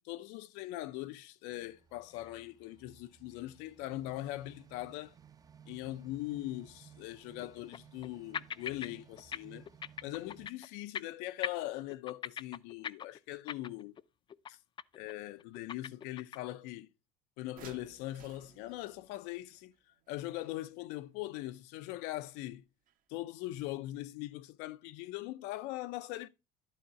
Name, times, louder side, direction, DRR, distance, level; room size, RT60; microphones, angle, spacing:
voice 1, 0.0-5.1 5.7-9.7 10.0-13.9 14.5-14.6 14.9-16.9 17.4-19.7 20.1-22.6 23.1-26.3, left 16 dB, 80° left, 0.5 m, -41 dB
sound 1, 1.5-10.5, right 8 dB, 20° right, 0.5 m, -59 dB
sound 2, 2.1-2.3 2.7-2.8 3.4-3.5 6.6-6.7 7.4-8.1 8.3-8.9 9.2-9.4 9.7-10.7 11.0-11.2 11.4-14.0 14.3-14.5 14.8-15.1 15.4-16.5, left 8 dB, 30° left, 0.4 m, -41 dB
sound 3, 17.6-21.0 22.9-23.0 23.3-23.4, right 8 dB, 55° right, 1.3 m, -58 dB
11.5 x 3.8 x 5.6 m
cardioid pair, 120°, 17 cm